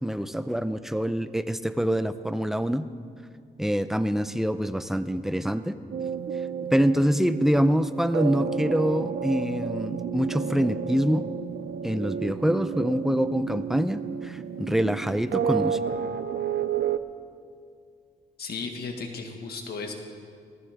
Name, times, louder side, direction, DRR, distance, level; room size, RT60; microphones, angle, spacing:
voice 1, 0.0-2.9 3.6-5.7 6.7-11.2 11.8-15.8, equal, ahead, 12 dB, 0.6 m, -25 dB
sound 1, 5.9-17.0, right 8 dB, 75° right, 0.6 m, -31 dB
voice 2, 18.4-19.9, left 4 dB, 80° left, 3 dB, 1.8 m, -35 dB
18.5 x 15.0 x 3.6 m, 2.2 s
cardioid pair, 80°, 16 cm